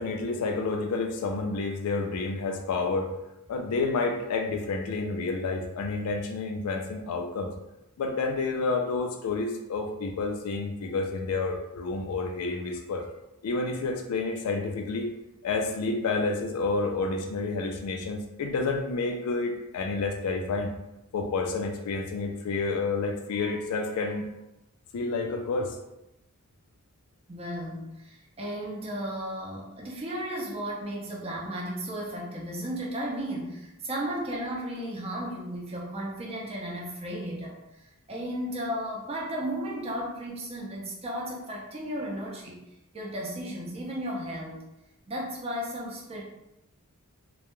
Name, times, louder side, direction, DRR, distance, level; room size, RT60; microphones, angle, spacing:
voice 1, 0.0-3.1 3.5-7.5 8.0-13.1 13.4-15.1 15.4-20.7 21.1-24.3 24.9-25.8, left 3 dB, 75° left, 3 dB, 0.3 m, -29 dB
voice 2, 27.3-37.6 38.1-42.6 42.9-44.6 45.1-46.2, equal, 25° right, -3 dB, 0.5 m, -34 dB
2.2 x 2.1 x 3.0 m, 0.90 s
head